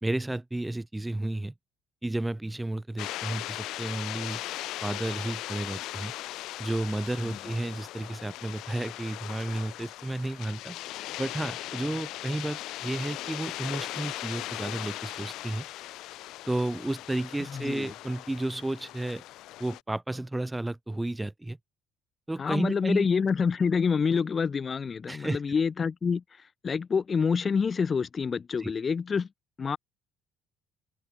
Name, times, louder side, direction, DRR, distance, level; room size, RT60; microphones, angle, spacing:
voice 1, 0.0-1.5 2.0-4.4 4.8-6.1 6.6-10.8 11.2-15.7 16.5-19.2 19.6-21.6 22.3-23.1 25.1-25.4 28.6-28.7, right 1 dB, 10° right, 0.4 m, -32 dB
sound 1, 3.0-19.8, left 16 dB, 75° left, 0.4 m, -39 dB
voice 2, 17.5-17.9 22.4-29.3 29.6-29.8, left 5 dB, 35° left, 0.7 m, -27 dB
supercardioid pair, 80°, 0 cm